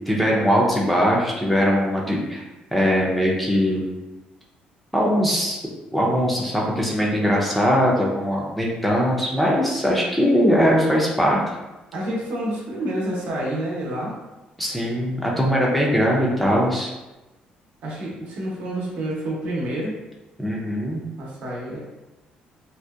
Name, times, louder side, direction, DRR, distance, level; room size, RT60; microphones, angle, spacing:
voice 1, 0.1-2.4 2.7-3.9 4.9-5.6 5.9-11.4 14.6-16.9 20.4-21.0, equal, 5° left, -3 dB, 0.4 m, -21 dB
voice 2, 11.9-14.2 17.8-19.9 21.2-21.8, right 1 dB, 70° right, -4 dB, 0.7 m, -28 dB
2.6 x 2.1 x 2.2 m, 1.1 s
cardioid pair, 120°, 3 cm